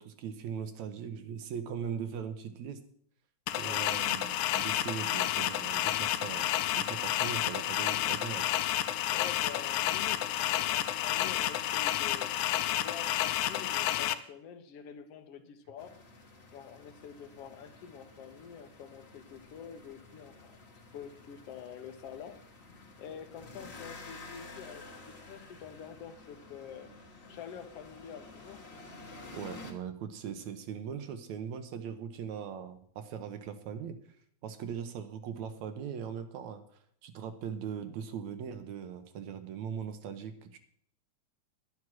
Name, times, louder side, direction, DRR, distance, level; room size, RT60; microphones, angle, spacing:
voice 1, 0.0-2.8 3.5-8.5 29.3-34.0 34.4-36.6 37.0-40.6, right 7 dB, 75° right, 9 dB, 2.3 m, -40 dB
sound 1, 3.5-14.1, left 12 dB, 90° left, 2.1 m, -30 dB
voice 2, 3.6-3.9 9.1-12.4 12.7-16.0 16.5-22.4 23.0-26.9 27.3-28.7, left 7 dB, 60° left, 8 dB, 1.9 m, -47 dB
sound 2, 15.8-29.7, left 3 dB, 30° left, 1.3 m, -51 dB
11.0 x 9.7 x 6.0 m, 0.62 s
omnidirectional pair, 3.4 m